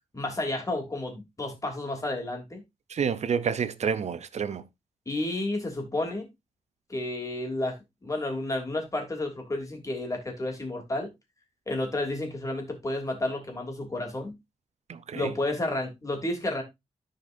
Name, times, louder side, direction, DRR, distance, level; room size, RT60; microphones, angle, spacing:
voice 1, 0.1-2.6 5.1-6.3 6.9-11.1 11.7-14.3 15.1-16.6, left 2 dB, 25° left, 3.1 m, -31 dB
voice 2, 2.9-4.6 14.9-15.3, right 6 dB, 65° right, 0.7 m, -29 dB
14.0 x 5.1 x 2.6 m
wide cardioid pair, 130°, 12 cm